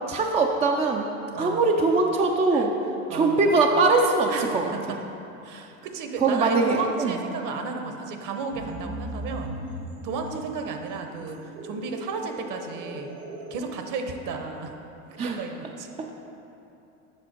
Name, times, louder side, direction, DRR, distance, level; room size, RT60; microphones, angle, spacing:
voice 1, 0.1-1.1 1.4-2.7 3.1-4.7 6.2-7.1 15.2-15.4 16.0-16.2, right 3 dB, 15° right, 2 dB, 0.3 m, -22 dB
voice 2, 1.3-1.7 2.5-2.7 3.1-3.5 4.3-5.0 5.4-9.5 10.0-13.1 13.5-14.7 15.1-15.9, right 4 dB, 45° right, 5 dB, 1.0 m, -33 dB
sound 1, 8.4-13.5, equal, 85° right, 1.8 m, -39 dB
7.8 x 6.1 x 4.4 m, 2.8 s
hypercardioid pair, 95°, 43 cm